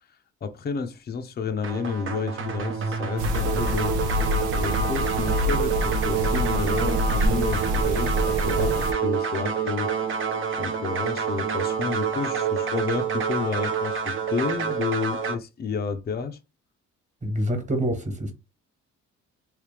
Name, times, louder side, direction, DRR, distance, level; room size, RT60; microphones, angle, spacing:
voice 1, 0.4-4.0 4.3-9.9 10.6-16.4, left 5 dB, 35° left, 0.5 m, -31 dB
sound 1, 1.6-15.3, right 6 dB, 40° right, 0.8 m, -27 dB
sound 2, 3.2-8.9, equal, 90° right, 0.7 m, -26 dB
voice 2, 17.2-18.3, equal, 25° right, 1.4 m, -26 dB
3.2 x 3.2 x 3.3 m
cardioid pair, 90°, 30 cm